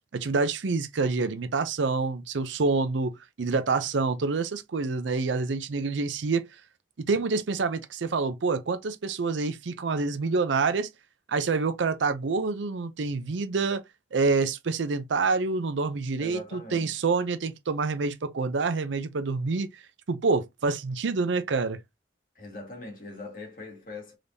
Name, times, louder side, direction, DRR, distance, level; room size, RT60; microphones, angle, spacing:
voice 1, 0.1-6.4 7.0-10.9 11.3-13.8 14.1-19.8 20.1-21.8, right 4 dB, 90° right, 0.6 m, -27 dB
voice 2, 16.2-17.0 22.4-24.2, left 2 dB, 50° left, 1.8 m, -41 dB
3.7 x 3.4 x 2.7 m
head